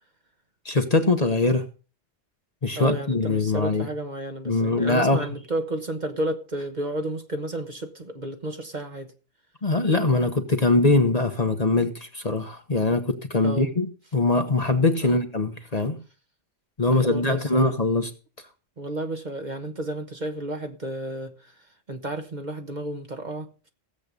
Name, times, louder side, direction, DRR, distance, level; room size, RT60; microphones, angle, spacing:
voice 1, 0.6-1.7 2.6-3.9 4.4-5.3 9.6-16.0 16.8-18.1, left 3 dB, 30° left, 1.3 m, -22 dB
voice 2, 2.7-9.1 13.4-13.7 15.0-15.2 16.9-17.7 18.8-21.5 21.9-23.7, right 1 dB, 40° right, 1.3 m, -32 dB
16.5 x 7.8 x 5.3 m
omnidirectional pair, 1.3 m